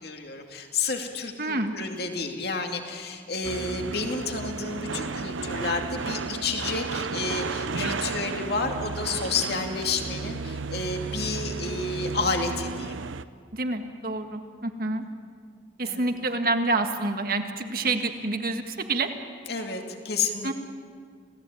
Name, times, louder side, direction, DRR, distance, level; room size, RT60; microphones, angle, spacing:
voice 1, 0.0-12.9 15.0-15.3 15.8-16.1 19.5-20.5, left 4 dB, 55° left, 3 dB, 2.4 m, -30 dB
voice 2, 1.4-1.8 13.5-15.0 15.8-19.1 20.4-20.5, right 2 dB, 50° right, 6 dB, 1.8 m, -27 dB
sound 1, 3.4-13.2, right 4 dB, 90° right, 0.8 m, -33 dB
27.5 x 17.5 x 9.2 m, 2.1 s
head